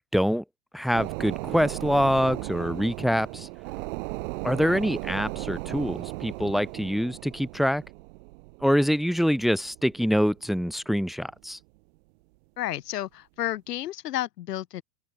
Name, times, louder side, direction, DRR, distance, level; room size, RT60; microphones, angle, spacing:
voice 1, 0.1-0.4 0.7-3.5 4.4-7.8 8.6-11.6, equal, ahead, 3.7 m, -25 dB
sound 1, 0.9-10.9 11.3-11.4, right 25 dB, 50° right, 3.4 m, -36 dB
voice 2, 12.6-14.8, left 13 dB, 70° left, 6.8 m, -31 dB
open air
hypercardioid pair, 130°, 50 cm